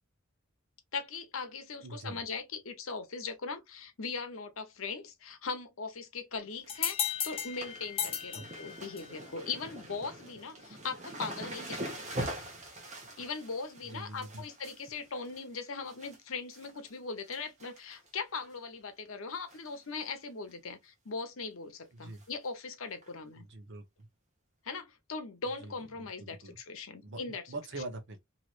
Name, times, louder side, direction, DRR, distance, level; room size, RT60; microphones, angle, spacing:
voice 1, 0.9-11.8 12.1-12.2 13.2-23.5 24.6-27.4, left 4 dB, 75° left, 0.8 m, -40 dB
voice 2, 1.8-2.2 8.3-8.5 13.8-14.5 21.9-22.2 23.3-24.1 25.6-26.6 27.0-28.2, right 2 dB, 60° right, 0.9 m, -44 dB
sound 1, 6.4-6.7 6.9-16.2 16.5-16.9 17.3-18.1 18.4-18.5 19.5-19.8 20.0-20.1 20.5-20.6 22.2-22.3 23.0-23.1, right 1 dB, 35° right, 1.0 m, -43 dB
sound 2, 6.7-9.3, left 8 dB, 30° left, 0.5 m, -35 dB
3.1 x 2.9 x 2.4 m
head